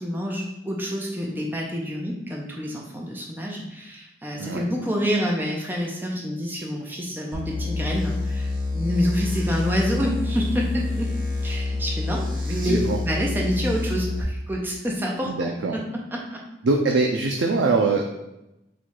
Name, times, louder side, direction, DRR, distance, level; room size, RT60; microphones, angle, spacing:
voice 1, 0.0-11.1 11.4-16.4, equal, 10° right, -1 dB, 0.5 m, -27 dB
sound 1, 7.3-14.2, left 3 dB, 50° right, 0.9 m, -27 dB
voice 2, 12.6-13.0 15.3-15.8 16.6-18.0, right 3 dB, 85° right, 1 dB, 0.4 m, -22 dB
4.1 x 2.3 x 4.6 m, 0.92 s
head